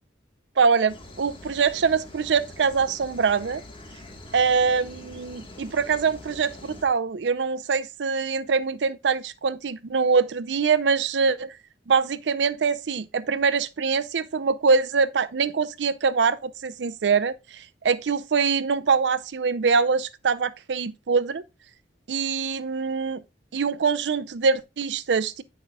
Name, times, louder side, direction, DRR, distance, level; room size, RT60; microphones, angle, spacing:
voice 1, 0.6-3.6 4.3-11.5 11.9-21.4 22.1-23.2 23.5-25.4, right 5 dB, 75° right, 0.5 m, -24 dB
sound 1, 0.9-6.8, left 1 dB, 30° left, 1.3 m, -44 dB
9.2 x 6.1 x 2.2 m
head